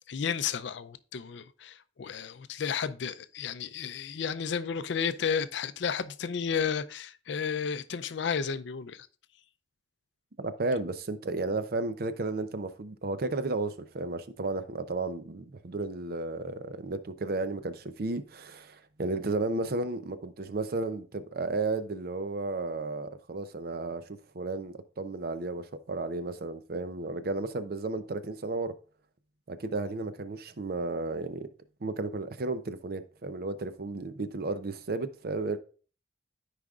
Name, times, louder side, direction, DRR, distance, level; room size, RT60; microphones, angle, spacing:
voice 1, 0.1-9.1, left 6 dB, 65° left, 0.4 m, -32 dB
voice 2, 10.4-24.0 24.3-28.7 29.5-31.5 31.8-35.6, right 3 dB, 55° right, 0.6 m, -33 dB
13.5 x 5.0 x 2.4 m
head